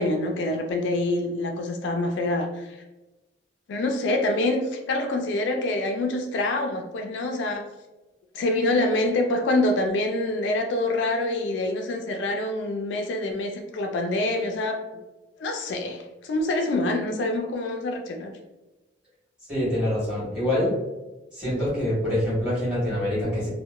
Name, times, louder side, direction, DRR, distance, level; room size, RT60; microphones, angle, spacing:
voice 1, 0.0-2.8 3.7-7.7 8.3-14.9 15.4-18.3, left 2 dB, 75° left, 4 dB, 0.3 m, -26 dB
voice 2, 19.5-20.7 21.3-23.5, left 1 dB, 5° right, -9 dB, 1.2 m, -25 dB
2.8 x 2.1 x 2.2 m, 1.1 s
head